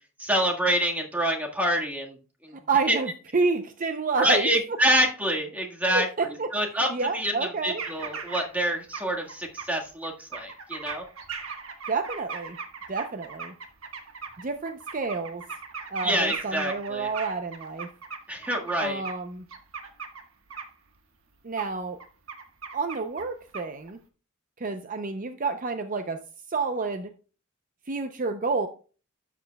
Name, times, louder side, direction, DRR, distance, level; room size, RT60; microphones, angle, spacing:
voice 1, 0.2-2.6 2.9-3.0 4.2-11.0 16.0-17.1 18.3-19.0, equal, 10° right, 0 dB, 1.6 m, -27 dB
voice 2, 2.5-4.5 5.9-6.5 6.9-7.8 11.9-12.6 12.9-13.5 14.4-15.4 15.9-17.9 18.8-19.4 21.4-22.0 22.7-24.0 24.6-26.2 26.5-27.1 27.9-28.7, right 4 dB, 40° right, 7 dB, 0.6 m, -29 dB
sound 1, 7.8-8.7 8.9-9.6 10.0-19.2 19.5-20.2 20.5-20.7 21.6-21.7 22.0-23.3 23.5-23.9, right 5 dB, 80° right, 1.4 m, -38 dB
12.0 x 7.5 x 2.3 m, 0.36 s
head